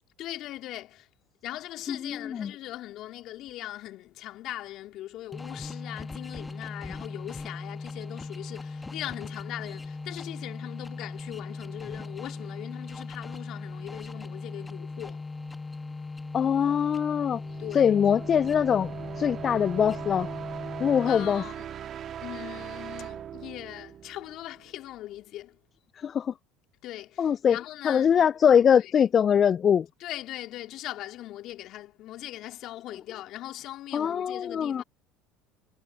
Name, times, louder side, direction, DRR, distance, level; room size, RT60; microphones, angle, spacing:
voice 1, 0.2-1.1 1.4-15.3 17.6-17.9 21.0-21.7 22.2-25.6 26.8-28.1 28.8-28.9 30.0-34.8, left 14 dB, 55° left, 3.2 m, -40 dB
voice 2, 1.9-2.5 16.3-17.4 17.7-20.3 20.8-21.4 26.0-26.3 27.2-27.6 27.8-29.9 33.9-34.8, left 8 dB, 40° left, 0.4 m, -23 dB
sound 1, 5.3-21.4, left 3 dB, 15° left, 1.9 m, -39 dB
sound 2, 17.2-24.9, right 9 dB, 45° right, 1.9 m, -40 dB
hypercardioid pair, 70°, 0 cm